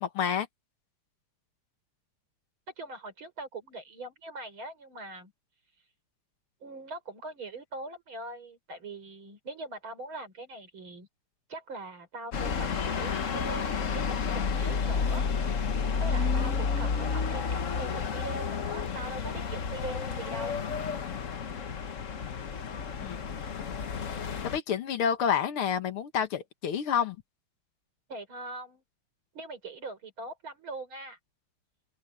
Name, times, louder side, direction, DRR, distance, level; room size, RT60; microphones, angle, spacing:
voice 1, 0.0-0.5 23.0-23.2 24.5-27.2, left 8 dB, 75° left, 2.2 m, -29 dB
voice 2, 2.8-5.3 6.6-11.1 11.5-15.7 16.0-20.5 28.1-28.8 29.3-31.2, right 2 dB, 65° right, 5.8 m, -42 dB
sound 1, 12.3-24.6, left 5 dB, 45° left, 1.2 m, -31 dB
open air
omnidirectional pair, 2.4 m